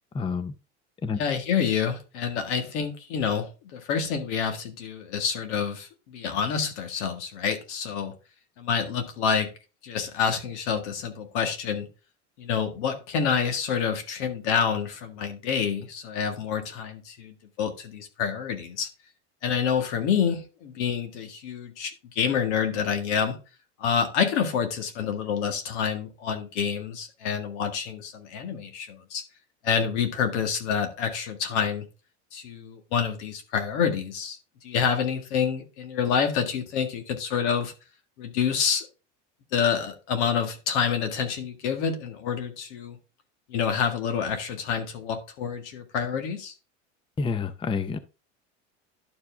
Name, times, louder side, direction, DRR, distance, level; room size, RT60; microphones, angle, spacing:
voice 1, 0.1-0.5 1.0-1.2 47.2-48.0, left 5 dB, 15° left, 0.6 m, -28 dB
voice 2, 1.1-8.1 8.6-9.5 9.8-11.9 12.4-18.9 19.4-23.4 23.8-29.2 29.6-31.9 32.3-37.7 38.2-38.9 39.5-43.0 43.5-46.5, left 7 dB, 75° left, 1.9 m, -28 dB
11.5 x 4.7 x 3.4 m
supercardioid pair, 105°, 35 cm